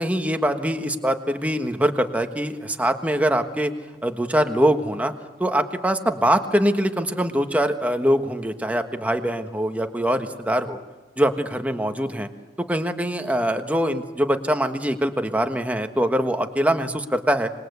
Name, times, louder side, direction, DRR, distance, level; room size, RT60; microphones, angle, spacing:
voice 1, 0.0-3.7 4.0-5.1 5.4-10.8 11.2-12.3 12.7-17.5, equal, 10° right, 6 dB, 1.3 m, -23 dB
26.0 x 21.5 x 8.2 m, 1.3 s
head